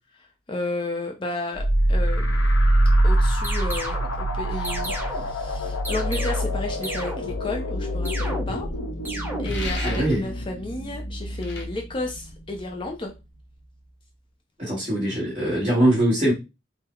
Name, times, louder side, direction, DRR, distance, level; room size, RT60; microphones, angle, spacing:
voice 1, 0.5-2.4 3.0-8.7 9.4-13.1, left 2 dB, 25° left, 2 dB, 0.5 m, -32 dB
sound 1, 1.6-12.9, right 1 dB, 90° left, 0.9 m, -25 dB
sound 2, 3.4-4.1 4.6-5.4 5.8-6.6 6.8-7.5 8.0-8.8 9.0-9.7, right 1 dB, 10° right, 0.8 m, -33 dB
sound 3, 9.4-10.3 11.4-11.7, left 3 dB, 60° left, 0.9 m, -35 dB
voice 2, 9.8-10.2 14.6-16.3, right 1 dB, 30° right, -8 dB, 1.4 m, -22 dB
3.8 x 2.0 x 4.3 m, 0.26 s
head